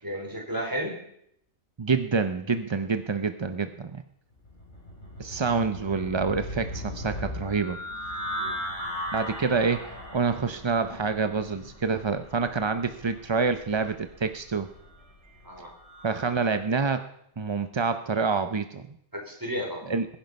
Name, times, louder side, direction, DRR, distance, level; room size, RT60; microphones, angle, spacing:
voice 1, 0.0-0.9 8.4-8.6 15.4-15.7 19.1-19.8, equal, 15° right, 0 dB, 4.1 m, -33 dB
voice 2, 1.8-4.0 5.2-7.8 9.1-9.8 10.1-14.7 16.0-17.0 17.4-18.9 19.9-20.1, right 4 dB, 40° right, 9 dB, 0.4 m, -27 dB
sound 1, 4.4-16.3, equal, 30° left, 6.1 m, -38 dB
21.0 x 10.5 x 5.3 m, 0.73 s
omnidirectional pair, 1.5 m